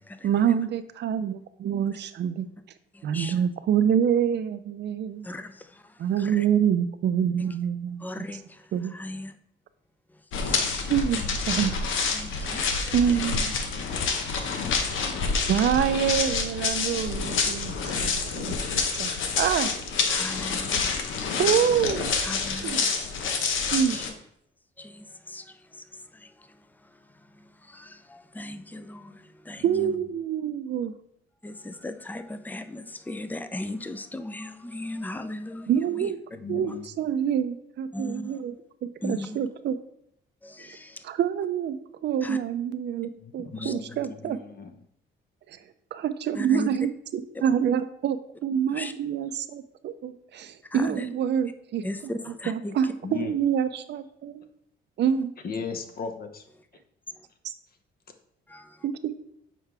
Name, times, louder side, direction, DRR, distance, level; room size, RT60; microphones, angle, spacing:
voice 1, 0.2-2.5 3.0-5.3 6.0-8.3 8.7-8.9 10.9-11.2 11.5-11.7 12.9-13.5 15.5-18.6 19.0-19.1 19.4-19.7 21.4-22.3 22.6-22.8 23.7-24.0 29.6-30.9 35.7-36.2 36.5-38.5 38.8-39.8 41.0-44.4 45.5-45.6 45.9-51.8 52.5-54.5 55.0-55.3 58.8-58.9, right 8 dB, 60° right, 11 dB, 0.5 m, -26 dB
voice 2, 2.9-3.4 5.2-6.5 8.0-9.3 10.4-10.8 11.1-11.4 11.7-11.8 12.1-13.2 15.7-15.9 17.8-18.8 20.1-21.4 22.2-23.1 23.4-24.1 24.8-29.7 31.4-36.1 36.7-36.8 37.9-38.4 39.0-39.4 40.4-41.0 42.2-42.4 43.5-43.7 44.2-44.4 46.3-46.7 48.7-48.9 50.7-51.1 51.8-52.7 57.1-57.3 58.5-58.8, left 1 dB, 10° left, 10 dB, 0.5 m, -38 dB
sound 1, 10.3-24.1, left 5 dB, 80° left, 0.9 m, -28 dB
voice 3, 29.6-30.0 36.4-36.8 43.2-44.7 53.0-53.3 55.4-56.5, left 5 dB, 50° left, 6 dB, 0.9 m, -36 dB
7.4 x 4.6 x 3.4 m, 0.73 s
cardioid pair, 90°, 20 cm